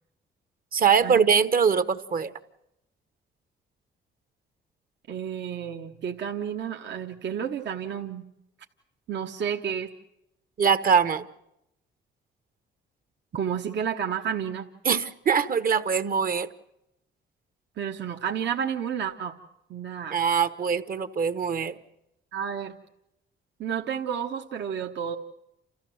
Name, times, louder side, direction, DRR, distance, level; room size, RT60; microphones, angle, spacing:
voice 1, 0.7-2.3 10.6-11.3 14.8-16.5 20.1-21.8, right 6 dB, 45° right, 12 dB, 1.2 m, -23 dB
voice 2, 5.1-8.2 9.1-9.9 13.3-14.7 17.8-19.3 19.7-20.2 22.3-22.8 23.6-25.2, right 8 dB, 65° right, 2 dB, 1.3 m, -31 dB
29.0 x 14.0 x 7.8 m, 0.85 s
cardioid pair, 90°, 20 cm